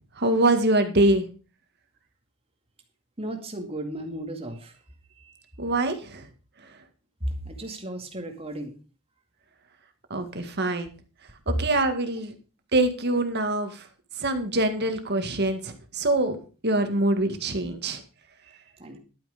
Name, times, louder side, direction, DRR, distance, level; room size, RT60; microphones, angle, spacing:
voice 1, 0.2-1.3 5.6-6.3 10.1-10.9 11.5-12.3 12.7-13.9 14.2-16.4 16.6-18.0, right 2 dB, 50° right, 7 dB, 1.9 m, -24 dB
voice 2, 3.2-4.8 5.2-5.4 7.2-8.8 18.8-19.0, right 1 dB, 25° right, 4 dB, 2.3 m, -35 dB
11.5 x 9.2 x 5.1 m, 0.35 s
head